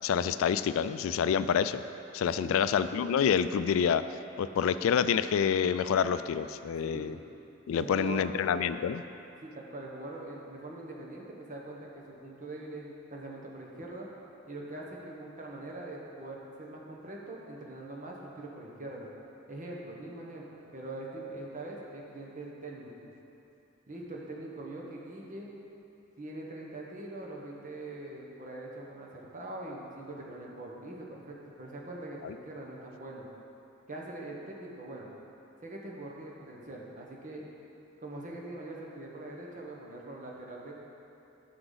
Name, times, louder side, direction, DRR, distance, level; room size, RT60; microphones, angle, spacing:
voice 1, 0.0-1.8 2.1-4.0 4.4-7.2 7.7-9.0 32.2-32.3, left 7 dB, 90° left, 12 dB, 0.3 m, -27 dB
voice 2, 6.8-7.2 7.7-8.3 9.4-14.1 14.5-19.1 19.5-23.1 23.9-25.5 26.2-33.3 33.9-35.1 35.6-37.5 38.0-40.7, right 2 dB, 40° right, -2 dB, 1.2 m, -43 dB
11.5 x 5.9 x 4.0 m, 2.9 s
head